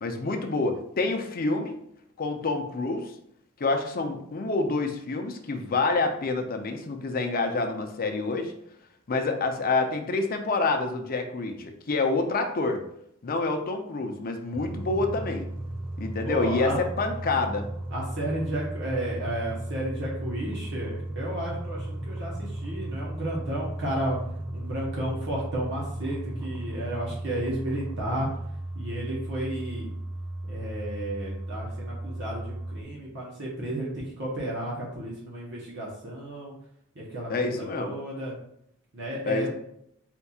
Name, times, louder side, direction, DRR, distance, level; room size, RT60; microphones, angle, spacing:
voice 1, 0.0-1.8 2.2-3.1 3.6-8.5 9.1-12.8 13.2-15.5 16.0-17.7 37.3-37.9 39.3-39.5, left 3 dB, 40° left, 5 dB, 0.6 m, -27 dB
sound 1, 14.5-32.8, right 1 dB, 10° right, 0.3 m, -35 dB
voice 2, 16.2-16.8 17.9-24.2 24.5-28.3 28.7-29.9 30.5-36.5 36.9-38.3 38.9-39.5, right 1 dB, 55° right, -4 dB, 1.0 m, -33 dB
4.3 x 4.1 x 2.4 m, 0.73 s
head